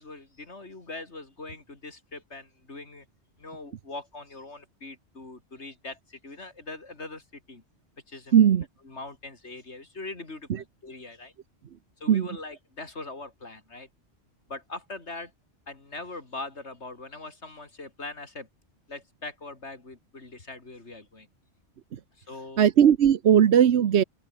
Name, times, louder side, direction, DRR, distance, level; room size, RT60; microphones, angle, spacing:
voice 1, 0.0-3.1 3.4-7.6 8.1-8.4 8.8-11.3 12.0-13.9 14.5-15.3 15.7-18.5 18.9-21.3 22.2-22.6, left 3 dB, 80° left, 3.9 m, -41 dB
voice 2, 8.3-8.6 10.5-10.6 12.1-12.3 21.9-22.0 22.6-24.0, right 9 dB, 75° right, 1.1 m, -18 dB
open air
omnidirectional pair, 1.2 m